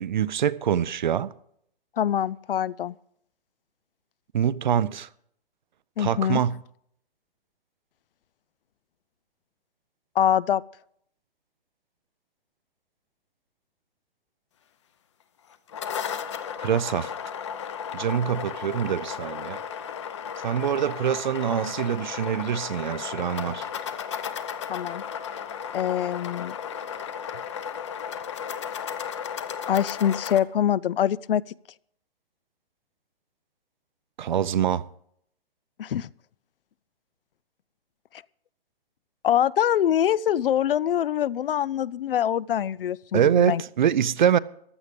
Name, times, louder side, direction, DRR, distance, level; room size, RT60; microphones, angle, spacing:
voice 1, 0.0-1.3 4.3-5.1 6.0-6.6 16.6-17.1 17.9-19.6 20.4-23.7 34.2-34.9 43.1-44.4, right 9 dB, 50° right, 0.5 m, -24 dB
voice 2, 2.0-2.9 6.0-6.4 10.2-10.6 24.7-25.0 25.7-26.5 29.7-31.4 35.8-36.1 39.2-43.6, left 10 dB, 65° left, 0.5 m, -24 dB
sound 1, 15.5-30.4, left 8 dB, 30° left, 0.7 m, -34 dB
15.0 x 11.0 x 5.1 m
hypercardioid pair, 170°, 30 cm